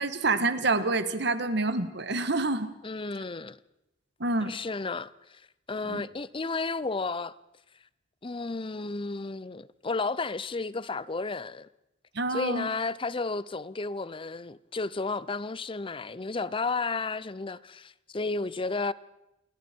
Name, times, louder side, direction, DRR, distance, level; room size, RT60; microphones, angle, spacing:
voice 1, 0.0-2.7 4.2-4.5 5.9-6.0 12.1-12.7, right 3 dB, 65° right, 1.6 m, -27 dB
voice 2, 2.8-3.6 4.4-5.4 5.7-7.3 8.2-11.7 12.3-18.9, left 3 dB, 30° left, 0.6 m, -32 dB
28.5 x 21.0 x 4.6 m
head